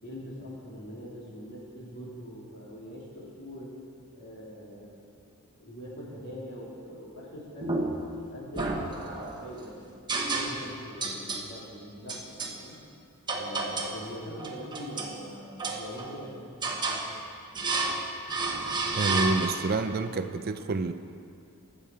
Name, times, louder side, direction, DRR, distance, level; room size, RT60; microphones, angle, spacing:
voice 1, 0.0-3.7 4.1-5.0 5.6-7.8 8.1-12.7 13.3-16.6 16.8-17.0, equal, 50° left, -5 dB, 3.4 m, -43 dB
sound 1, 7.6-8.1 8.6-9.4 10.1-10.7 11.0-11.5 12.1-12.6 13.3-14.0 14.4-15.2 15.6-16.2 16.6-17.1 17.6-18.0 18.3-19.8, right 3 dB, 20° right, 1.2 m, -31 dB
voice 2, 18.9-20.9, right 3 dB, 45° right, 10 dB, 0.5 m, -28 dB
21.5 x 7.4 x 4.8 m, 2.4 s
head